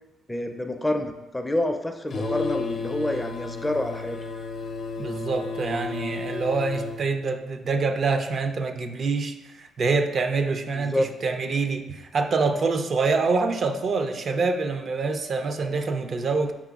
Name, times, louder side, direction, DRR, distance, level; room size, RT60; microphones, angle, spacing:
voice 1, 0.3-4.2 10.7-11.1, left 1 dB, 10° left, 6 dB, 0.4 m, -27 dB
sound 1, 2.1-7.0, left 4 dB, 55° left, 0.6 m, -32 dB
voice 2, 5.0-16.5, right 4 dB, 50° right, 6 dB, 0.4 m, -26 dB
6.0 x 3.6 x 2.3 m, 0.99 s
cardioid pair, 90°, 0 cm